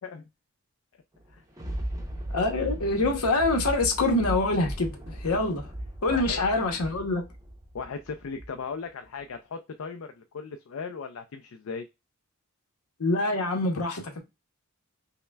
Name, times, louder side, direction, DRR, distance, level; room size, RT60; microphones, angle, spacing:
Thunder, 1.1-8.7 9.2-9.3, right 1 dB, 15° right, 0.6 m, -37 dB
voice 1, 2.3-5.6 6.0-7.2 13.0-14.2, left 2 dB, 90° left, 0.9 m, -25 dB
voice 2, 6.1-6.4 7.7-11.9, left 5 dB, 70° left, 0.4 m, -37 dB
5.6 x 2.1 x 2.2 m
head